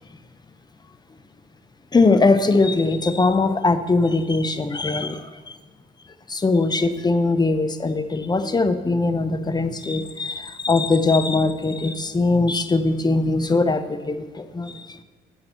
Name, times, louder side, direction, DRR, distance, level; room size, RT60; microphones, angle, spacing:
voice 1, 1.9-5.6 6.3-15.0, left 3 dB, 20° left, 10 dB, 0.7 m, -21 dB
17.0 x 5.8 x 3.0 m, 1.5 s
cardioid pair, 90°, 20 cm